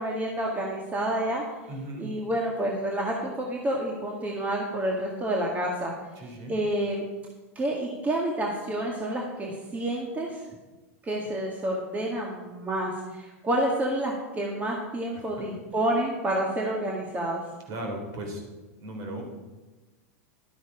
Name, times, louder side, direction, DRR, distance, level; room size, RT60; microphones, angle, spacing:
voice 1, 0.0-1.4 2.0-5.9 6.5-7.0 7.6-10.4 11.0-17.4, right 1 dB, 20° right, -1 dB, 1.8 m, -29 dB
voice 2, 1.7-2.1 6.2-6.5 15.1-15.5 17.7-18.4 18.8-19.2, right 1 dB, 45° right, 2 dB, 3.7 m, -37 dB
11.5 x 9.2 x 4.9 m, 1.2 s
hypercardioid pair, 115°, 8 cm